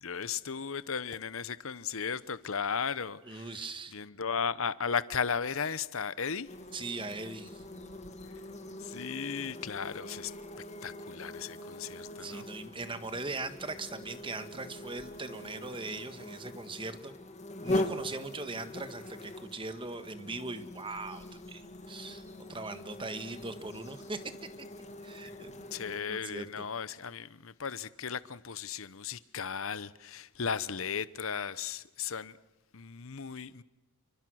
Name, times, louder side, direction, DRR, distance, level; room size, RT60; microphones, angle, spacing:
voice 1, 0.0-3.7 3.9-6.5 8.8-10.3 10.8-12.5 25.2-25.4 25.7-32.4 32.7-33.6, left 6 dB, 65° left, 0.9 m, -35 dB
voice 2, 3.2-4.0 6.7-7.6 12.2-17.1 17.6-24.2 25.0-26.6, right 3 dB, 25° right, 1.6 m, -40 dB
sound 1, 6.5-26.0, left 1 dB, 30° left, 1.9 m, -42 dB
29.5 x 24.5 x 6.4 m
head